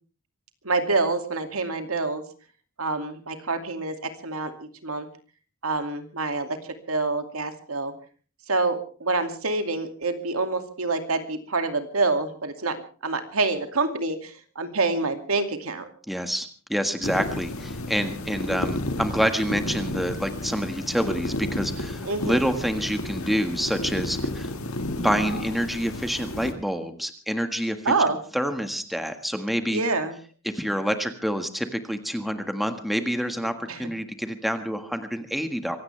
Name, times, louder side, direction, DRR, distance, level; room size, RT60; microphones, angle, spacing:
voice 1, 0.6-2.2 2.8-5.1 5.6-6.6 6.9-7.9 8.5-15.9 22.0-22.4 27.8-28.2 29.7-30.1 33.7-33.9, right 3 dB, 80° right, 7 dB, 2.5 m, -27 dB
voice 2, 16.1-24.5 25.0-29.8 30.4-35.8, equal, ahead, 7 dB, 1.7 m, -27 dB
sound 1, 17.0-26.5, left 1 dB, 75° left, 1.8 m, -32 dB
24.5 x 17.0 x 3.4 m, 0.39 s
head